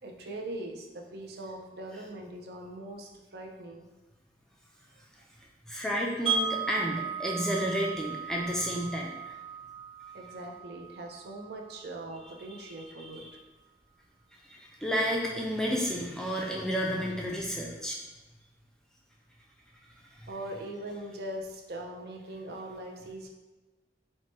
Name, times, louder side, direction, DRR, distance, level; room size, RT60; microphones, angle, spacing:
voice 1, 0.0-3.9 4.9-5.0 10.1-13.4 20.3-23.3, right 1 dB, 60° right, 2 dB, 0.4 m, -41 dB
voice 2, 5.7-9.3 13.0-13.1 14.5-18.0, equal, 5° left, -2 dB, 0.3 m, -31 dB
Wind chime, 6.3-12.2, right 5 dB, 30° right, 1.2 m, -36 dB
4.4 x 2.1 x 3.0 m, 1.2 s
head